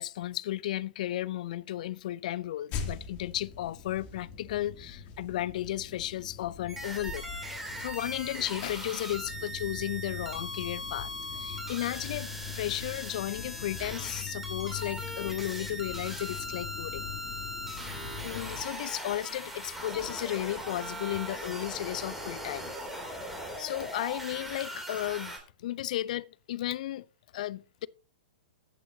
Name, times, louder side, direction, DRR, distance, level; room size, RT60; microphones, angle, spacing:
voice 1, 0.0-7.3 7.7-17.1 18.2-22.7 23.6-27.0 27.3-27.9, left 13 dB, 55° left, 0.5 m, -34 dB
sound 1, 2.7-18.6, left 7 dB, 35° left, 2.8 m, -42 dB
sound 2, 6.7-25.4, equal, 5° right, 2.9 m, -39 dB
14.5 x 8.6 x 2.8 m
hypercardioid pair, 115°, 5 cm